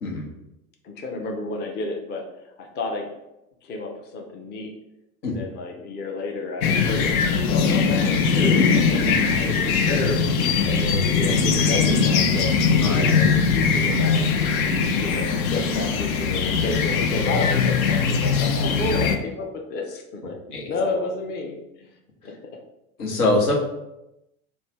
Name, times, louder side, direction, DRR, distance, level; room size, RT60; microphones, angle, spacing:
voice 1, 0.8-2.3 2.6-3.1 3.6-4.7 5.3-9.0 9.3-10.2 10.6-12.6 12.9-14.2 14.9-20.4 20.7-21.9 22.2-22.6, left 3 dB, 25° left, 2 dB, 0.5 m, -31 dB
sound 1, 6.6-19.2, left 5 dB, 65° left, 0.6 m, -21 dB
voice 2, 23.0-23.5, left 2 dB, 85° left, -2 dB, 1.1 m, -24 dB
3.2 x 2.3 x 4.2 m, 0.90 s
hypercardioid pair, 90°, 44 cm